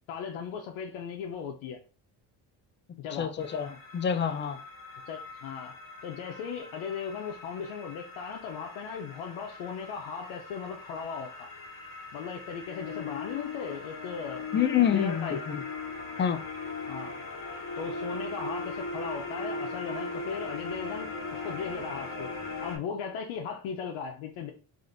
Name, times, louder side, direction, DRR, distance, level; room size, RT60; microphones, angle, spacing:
voice 1, 0.1-1.8 3.0-3.3 5.1-5.8 6.0-11.5 12.1-14.6 14.9-15.4 16.9-17.2 17.8-22.3 22.6-24.5, left 6 dB, 80° left, 0.6 m, -37 dB
voice 2, 3.1-4.6 14.5-15.6 16.2-16.4, left 9 dB, 25° left, 0.3 m, -27 dB
sound 1, 3.4-22.8, left 3 dB, 45° left, 1.4 m, -39 dB
4.8 x 2.5 x 2.5 m
cardioid pair, 95°, 48 cm